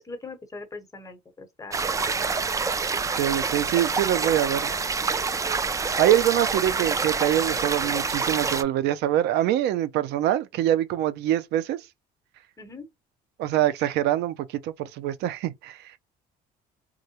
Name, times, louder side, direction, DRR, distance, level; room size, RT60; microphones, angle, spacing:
voice 1, 0.0-2.4 12.6-12.9, left 3 dB, 20° left, 0.9 m, -41 dB
sound 1, 1.7-8.6, right 4 dB, 20° right, 0.3 m, -27 dB
voice 2, 3.2-4.7 6.0-11.8 13.4-16.0, right 12 dB, 80° right, 0.5 m, -24 dB
3.7 x 2.1 x 2.8 m
cardioid pair, 110°, 17 cm